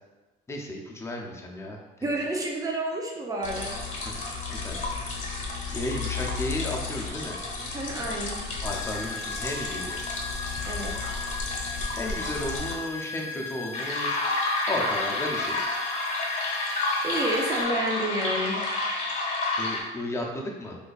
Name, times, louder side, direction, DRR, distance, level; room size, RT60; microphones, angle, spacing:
voice 1, 0.5-2.2 4.0-4.1 4.4-4.8 5.7-7.4 8.6-10.0 12.0-14.2 14.7-15.6 19.6-20.8, left 1 dB, 15° left, -1 dB, 0.6 m, -34 dB
voice 2, 2.0-3.8 7.6-8.4 10.7-11.0 17.0-18.6, right 1 dB, 20° right, -1 dB, 0.7 m, -29 dB
sound 1, 3.4-12.7 13.7-19.8, left 3 dB, 45° left, 0.8 m, -31 dB
sound 2, 8.6-17.6, left 4 dB, 90° left, 0.4 m, -38 dB
2.7 x 2.4 x 4.0 m, 1.1 s
cardioid pair, 110°, 17 cm